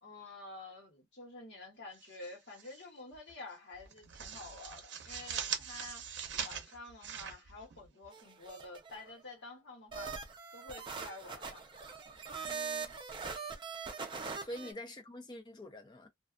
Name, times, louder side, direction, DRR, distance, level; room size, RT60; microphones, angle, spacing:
voice 1, 0.0-6.1 6.4-10.1 10.5-11.6 14.6-14.7, left 3 dB, 70° left, 1.2 m, -49 dB
sound 1, 1.9-2.8 3.1-3.3 3.7-8.2, right 8 dB, 75° right, 0.6 m, -42 dB
sound 2, 8.1-9.1 9.9-14.7, right 5 dB, 25° right, 0.5 m, -42 dB
voice 2, 12.4-12.9 14.2-16.1, left 1 dB, 25° left, 0.5 m, -46 dB
2.4 x 2.3 x 2.4 m
head